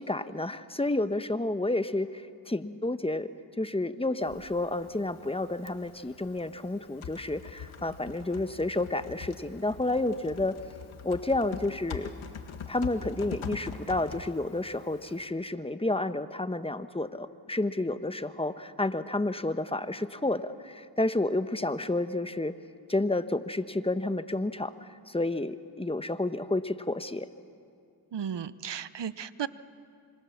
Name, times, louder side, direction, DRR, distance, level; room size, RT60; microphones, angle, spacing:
voice 1, 0.0-3.3 3.6-10.6 11.0-12.1 12.7-22.5 22.9-27.3, left 2 dB, 10° left, 11 dB, 1.1 m, -30 dB
Typing, 4.2-15.3, left 6 dB, 90° left, 1.8 m, -44 dB
voice 2, 28.1-29.5, right 8 dB, 60° right, 15 dB, 1.0 m, -34 dB
26.5 x 25.0 x 7.2 m, 2.4 s
cardioid pair, 50°, 47 cm